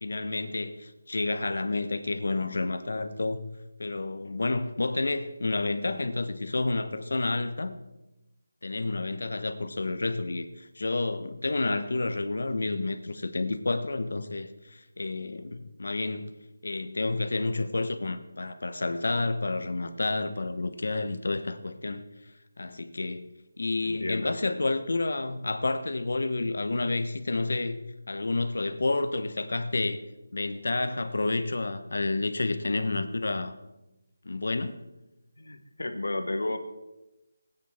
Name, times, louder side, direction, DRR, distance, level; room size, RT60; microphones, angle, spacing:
voice 1, 0.0-3.4 3.8-7.8 8.6-16.3 16.6-22.1 22.6-23.3 23.6-27.8 28.1-30.0 30.3-33.5 34.2-34.8, left 2 dB, 70° left, 1.1 m, -30 dB
voice 2, 23.8-24.7 35.4-36.6, left 2 dB, 90° left, 1.4 m, -33 dB
19.0 x 9.2 x 3.6 m
figure-of-eight pair, 165°, 0 cm